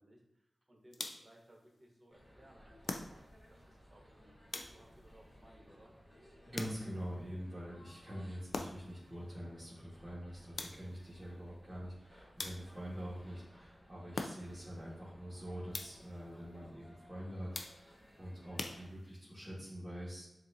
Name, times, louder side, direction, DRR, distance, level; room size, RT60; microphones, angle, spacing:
voice 1, 0.0-4.4 4.7-5.9, right 1 dB, 30° right, 0 dB, 1.0 m, -62 dB
sound 1, 0.9-1.4 2.8-3.5 4.5-5.1 6.5-7.1 8.5-9.0 10.6-11.1 12.4-13.0 14.1-14.7 15.7-16.2 17.5-18.1 18.6-19.3, left 3 dB, 70° left, 0.4 m, -44 dB
sound 2, 2.1-18.9, equal, 10° left, 1.1 m, -61 dB
voice 2, 6.4-20.3, equal, 10° right, -11 dB, 1.5 m, -45 dB
7.2 x 2.6 x 2.7 m, 0.89 s
wide cardioid pair, 95°, 0 cm